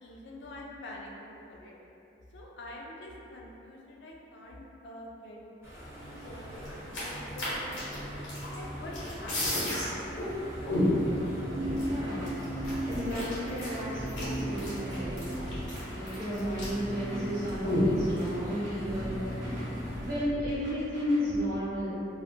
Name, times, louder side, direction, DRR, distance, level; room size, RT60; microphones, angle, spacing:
voice 1, 0.0-1.7 2.3-5.4 6.0-8.1 8.5-10.3, left 1 dB, 70° left, -2 dB, 0.4 m, -45 dB
sound 1, 5.6-20.1, right 1 dB, 15° right, 0.5 m, -38 dB
sound 2, 6.6-8.6 8.9-9.8 10.2-10.3 10.7-11.2 11.8-11.9 12.2-16.9 17.1-17.3 17.6-18.3, left 1 dB, 85° left, 0.9 m, -31 dB
sound 3, 11.6-21.4, equal, 85° right, 0.8 m, -43 dB
voice 2, 11.8-15.3 15.9-19.4 20.0-22.0, equal, 50° right, -11 dB, 0.9 m, -33 dB
2.4 x 2.1 x 2.6 m, 2.8 s
head